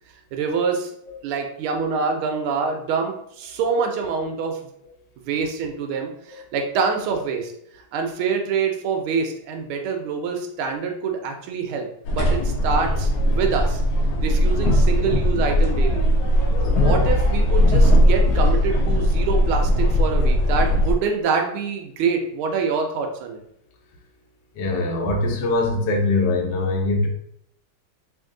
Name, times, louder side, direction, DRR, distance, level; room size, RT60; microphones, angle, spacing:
voice 1, 0.3-0.9 1.2-4.6 5.2-7.5 7.9-13.8 14.2-16.0 16.6-23.4, right 5 dB, 85° right, 3 dB, 1.5 m, -25 dB
sound 1, 12.0-20.9, equal, 85° left, 0.9 m, -19 dB
voice 2, 24.5-27.1, left 2 dB, 65° left, 1 dB, 1.3 m, -22 dB
3.5 x 2.6 x 3.7 m, 0.73 s
omnidirectional pair, 2.3 m